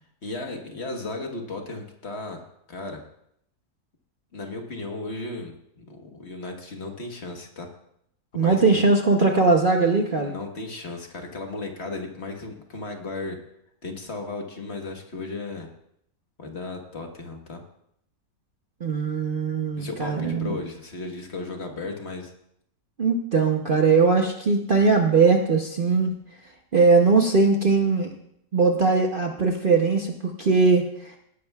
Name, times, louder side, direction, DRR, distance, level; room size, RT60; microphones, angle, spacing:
voice 1, 0.2-2.4 2.7-3.0 4.3-7.7 8.3-8.9 10.2-13.4 13.8-15.7 16.4-17.6 19.7-22.3, left 3 dB, 45° left, 2 dB, 1.5 m, -35 dB
voice 2, 8.3-10.3 18.8-20.6 23.0-26.1 26.7-28.1 28.5-30.1 30.4-31.2, right 4 dB, 40° right, 2 dB, 0.8 m, -20 dB
18.0 x 11.0 x 2.3 m, 0.73 s
omnidirectional pair, 1.7 m